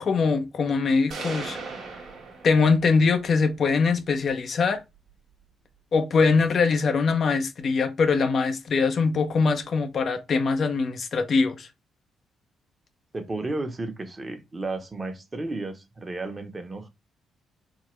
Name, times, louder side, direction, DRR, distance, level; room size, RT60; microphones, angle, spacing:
voice 1, 0.0-1.6 2.4-4.8 5.9-11.7, left 4 dB, 55° left, 0.6 m, -22 dB
sound 1, 1.1-3.1, right 4 dB, 60° right, 1.2 m, -37 dB
voice 2, 13.1-16.9, right 2 dB, 30° right, 1.1 m, -33 dB
3.7 x 2.8 x 3.2 m
hypercardioid pair, 40°, 0 cm